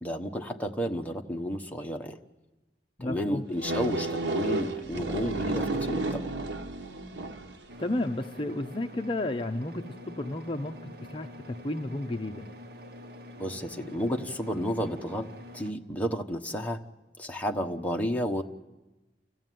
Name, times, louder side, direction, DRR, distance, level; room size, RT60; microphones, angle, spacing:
voice 1, 0.0-2.2 3.0-6.2 13.4-15.3 15.5-16.8 17.2-18.4, equal, 10° left, 3 dB, 1.1 m, -32 dB
voice 2, 3.0-3.4 7.8-12.5, left 1 dB, 30° left, 5 dB, 0.7 m, -32 dB
sound 1, 3.6-7.6, right 2 dB, 85° right, 1.3 m, -31 dB
sound 2, 7.7-15.7, left 1 dB, 65° right, 1.7 m, -46 dB
29.0 x 15.0 x 9.2 m, 1.1 s
head